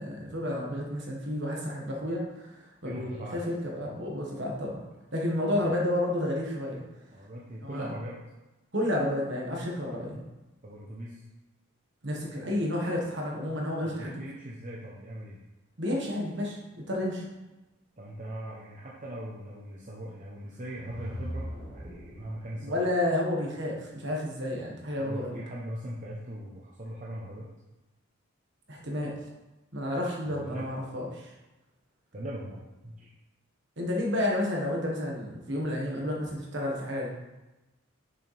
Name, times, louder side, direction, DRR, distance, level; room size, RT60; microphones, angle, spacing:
voice 1, 0.0-4.8 5.1-6.8 7.6-7.9 8.7-10.2 12.0-14.1 15.8-16.6 16.9-17.2 22.6-25.4 28.7-29.2 29.7-31.3 33.8-37.1, left 1 dB, 55° right, -2 dB, 1.6 m, -31 dB
voice 2, 2.8-3.4 3.8-4.0 7.1-8.2 10.6-11.3 13.8-15.4 18.0-22.8 25.0-27.5 30.3-30.7 32.1-33.1, right 1 dB, 35° right, -5 dB, 0.8 m, -40 dB
sound 1, 20.4-22.5, equal, 75° right, 2.7 m, -39 dB
6.7 x 6.4 x 3.4 m, 1.0 s
head